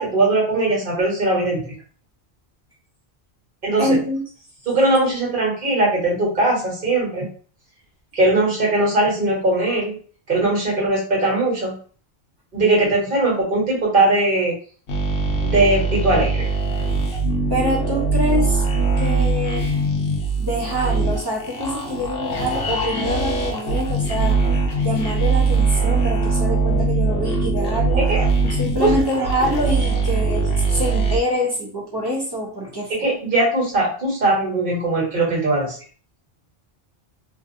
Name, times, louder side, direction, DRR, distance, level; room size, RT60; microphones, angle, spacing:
voice 1, 0.0-1.6 3.6-4.0 4.7-7.2 8.1-10.0 10.3-11.7 12.5-14.5 15.4-16.5 28.0-28.3 28.8-29.0 32.9-35.8, right 2 dB, 55° right, -3 dB, 1.3 m, -20 dB
voice 2, 3.8-4.2 17.1-17.2 17.5-18.6 19.0-19.7 20.4-24.4 24.8-28.0 28.5-32.9, equal, 25° right, -4 dB, 0.7 m, -25 dB
sound 1, 14.9-31.2, right 3 dB, 70° left, 0.8 m, -21 dB
2.6 x 2.3 x 2.6 m, 0.42 s
omnidirectional pair, 1.1 m